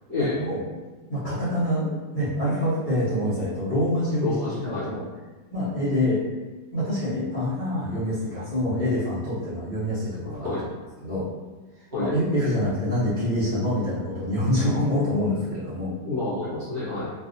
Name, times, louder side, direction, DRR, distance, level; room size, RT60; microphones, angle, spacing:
voice 1, 0.2-0.6 1.1-5.0 5.5-6.2 6.7-10.5 11.0-11.3 11.8-15.9, left 1 dB, 35° left, -14 dB, 1.0 m, -26 dB
voice 2, 4.2-4.9 10.4-10.6 11.9-12.1 16.1-17.1, left 3 dB, 55° right, -9 dB, 1.3 m, -28 dB
3.3 x 2.6 x 2.6 m, 1.2 s
omnidirectional pair, 1.9 m